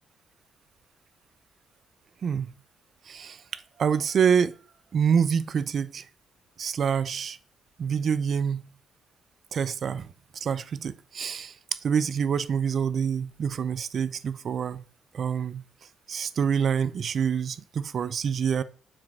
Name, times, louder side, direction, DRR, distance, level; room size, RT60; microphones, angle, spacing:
voice 1, 3.1-4.6 4.9-6.0 6.6-7.4 7.8-8.6 9.5-10.1 10.4-11.5 11.8-14.8 15.1-15.6 16.1-18.6, right 7 dB, 55° right, 0.6 m, -26 dB
7.4 x 4.9 x 6.3 m
cardioid pair, 90°, 0 cm